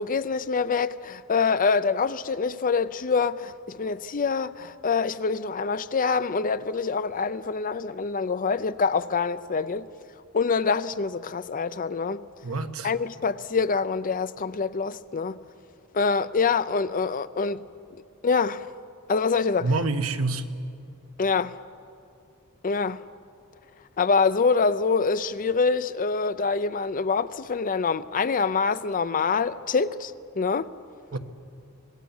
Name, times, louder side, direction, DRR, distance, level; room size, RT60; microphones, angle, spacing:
voice 1, 0.0-9.9 10.3-12.2 12.8-15.4 15.9-17.7 18.2-18.7 19.1-19.7 21.2-21.6 22.6-23.0 24.0-30.7, left 5 dB, 40° left, 0.6 m, -25 dB
voice 2, 12.4-12.9 19.6-20.4 31.1-31.2, right 3 dB, 75° right, 1.3 m, -27 dB
25.5 x 19.5 x 7.2 m
head